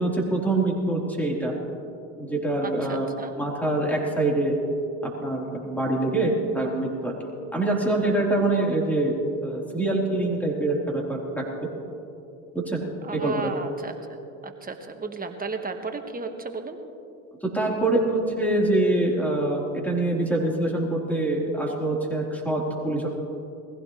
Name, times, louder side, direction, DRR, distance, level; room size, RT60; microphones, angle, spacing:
voice 1, 0.0-1.5 2.2-3.1 3.3-4.5 5.0-7.1 7.5-9.1 9.4-11.4 12.5-12.8 13.1-13.3 17.4-23.1, right 2 dB, 5° left, -3 dB, 4.2 m, -25 dB
voice 2, 2.6-3.3 13.0-13.9 14.4-16.8, right 4 dB, 25° right, 5 dB, 1.7 m, -34 dB
21.0 x 16.0 x 3.3 m, 2.7 s
hypercardioid pair, 75°, 38 cm